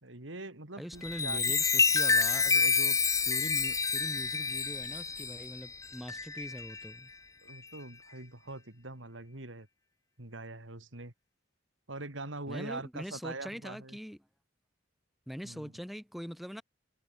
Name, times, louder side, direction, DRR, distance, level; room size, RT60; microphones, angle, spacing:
voice 1, 0.0-1.5 7.4-9.7 10.2-11.1 11.9-14.0 15.4-15.7, right 2 dB, 80° right, 3.2 m, -43 dB
voice 2, 0.8-7.1 12.5-14.2 15.3-16.6, equal, ahead, 5.3 m, -43 dB
Chime, 0.9-6.9 7.5-7.8, left 5 dB, 15° left, 0.8 m, -28 dB
head